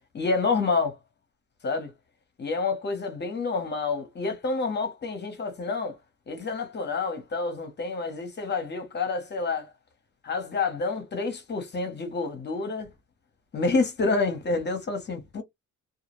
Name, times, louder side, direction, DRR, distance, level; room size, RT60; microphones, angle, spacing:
voice 1, 0.1-1.0 1.6-1.9 2.4-6.0 6.3-9.7 10.2-12.9 13.5-15.4, left 4 dB, 35° left, 0.7 m, -28 dB
2.2 x 2.0 x 2.9 m
cardioid pair, 150°, 32 cm